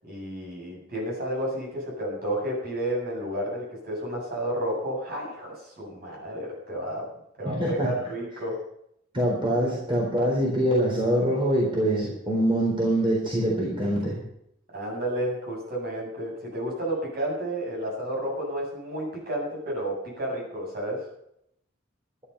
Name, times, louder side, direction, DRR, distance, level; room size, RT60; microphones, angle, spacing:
voice 1, 0.0-7.1 7.4-8.6 14.7-21.1, right 1 dB, 50° right, -2 dB, 7.6 m, -31 dB
voice 2, 7.4-7.9 9.1-14.2, right 1 dB, 25° right, -4 dB, 4.0 m, -24 dB
12.5 x 12.5 x 5.7 m, 0.75 s
head